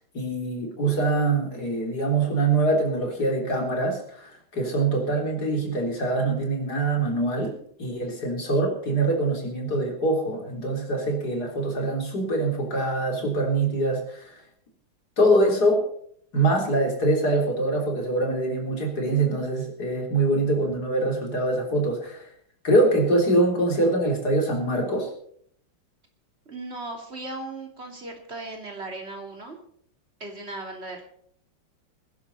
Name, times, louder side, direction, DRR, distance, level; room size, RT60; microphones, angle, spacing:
voice 1, 0.1-14.4 15.2-15.8 16.3-22.3 22.6-25.1, right 2 dB, 50° left, 1 dB, 4.2 m, -24 dB
voice 2, 26.5-29.6 30.2-31.0, right 2 dB, 30° right, 2 dB, 3.1 m, -37 dB
20.5 x 11.0 x 4.2 m, 0.63 s
omnidirectional pair, 2.2 m